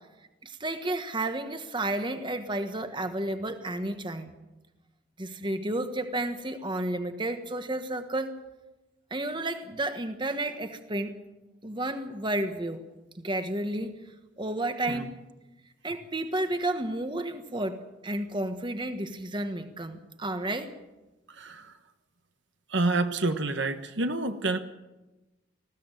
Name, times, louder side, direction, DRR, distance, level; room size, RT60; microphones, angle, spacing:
voice 1, 0.4-4.3 5.2-8.3 9.1-11.1 11.6-12.8 13.1-14.0 14.4-15.1 15.8-20.7, right 1 dB, 25° right, 8 dB, 1.4 m, -31 dB
voice 2, 21.3-21.8 22.7-24.6, right 2 dB, 60° right, 8 dB, 1.2 m, -28 dB
20.0 x 15.5 x 9.1 m, 1.0 s
head